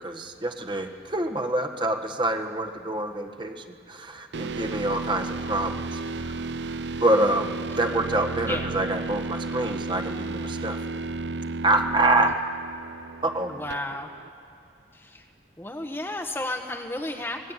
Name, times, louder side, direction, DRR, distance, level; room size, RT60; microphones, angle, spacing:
voice 1, 0.0-6.0 7.0-10.8 11.6-12.4 13.2-13.5, right 2 dB, 25° right, 4 dB, 1.5 m, -26 dB
sound 1, 4.3-14.3, right 3 dB, 90° right, 0.7 m, -33 dB
voice 2, 13.5-14.1 14.9-15.2 15.6-17.5, left 1 dB, 15° left, 3 dB, 1.2 m, -33 dB
24.5 x 19.5 x 9.0 m, 2.7 s
head